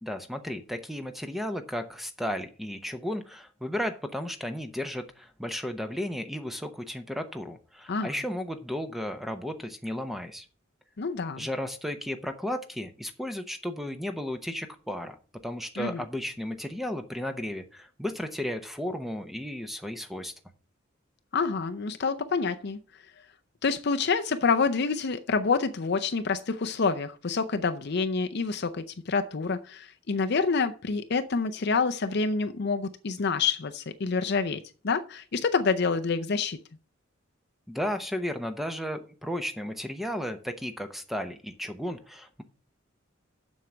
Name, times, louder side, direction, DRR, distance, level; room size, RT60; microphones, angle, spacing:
voice 1, 0.0-10.5 11.4-15.2 15.4-20.3 37.7-42.4, equal, ahead, 0.8 m, -34 dB
voice 2, 11.0-11.5 15.8-16.0 21.3-22.8 23.6-36.6, left 4 dB, 55° left, 0.6 m, -27 dB
7.6 x 6.4 x 7.0 m
head